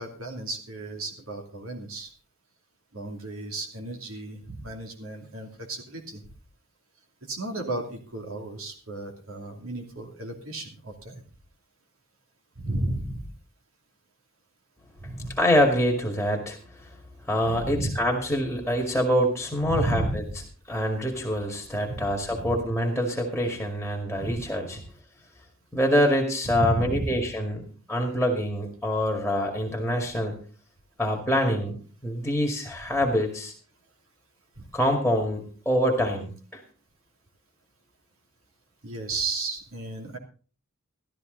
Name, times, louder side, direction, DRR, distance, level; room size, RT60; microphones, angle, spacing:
voice 1, 0.0-2.1 2.9-6.2 7.3-11.2 12.6-13.3 15.0-15.3 17.4-17.9 19.6-20.3 21.9-22.5 24.2-24.4 24.7-24.8 26.4-27.2 34.6-34.7 38.8-40.2, right 2 dB, 75° right, 2 dB, 2.7 m, -33 dB
voice 2, 15.4-16.9 17.3-20.2 20.7-24.8 25.7-30.4 31.0-33.5 34.7-36.6, equal, 5° left, 1 dB, 2.2 m, -25 dB
13.5 x 13.0 x 3.9 m, 0.39 s
head